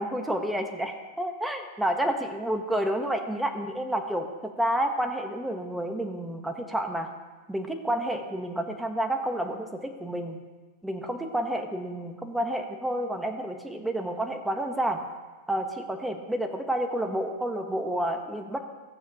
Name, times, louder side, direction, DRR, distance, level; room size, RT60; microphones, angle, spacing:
voice 1, 0.0-7.1 7.5-10.4 10.8-15.0 15.5-18.6, right 1 dB, 5° right, 5 dB, 1.0 m, -30 dB
14.5 x 8.1 x 2.9 m, 1.3 s
hypercardioid pair, 125°, 0 cm